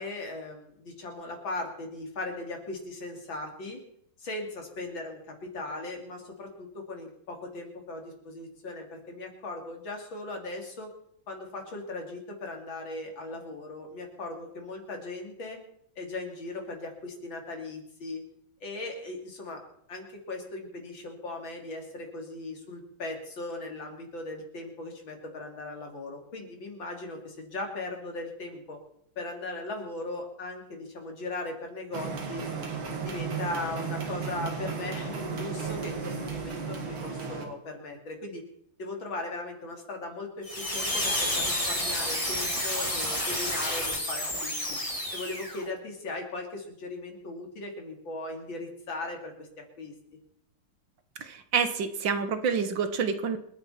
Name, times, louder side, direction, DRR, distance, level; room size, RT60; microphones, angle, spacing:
voice 1, 0.0-3.8 4.2-10.9 11.3-15.6 16.0-18.2 18.6-19.6 19.9-28.8 29.2-32.5 33.0-38.4 38.8-44.6 45.1-49.9, left 2 dB, 65° left, 2 dB, 3.7 m, -38 dB
sound 1, 31.9-37.5, right 5 dB, 85° right, 3.1 m, -34 dB
sound 2, 40.4-45.6, left 1 dB, 15° left, 3.6 m, -30 dB
voice 2, 51.2-53.4, right 6 dB, 65° right, 9 dB, 1.8 m, -28 dB
27.5 x 9.8 x 4.3 m, 0.71 s
omnidirectional pair, 2.2 m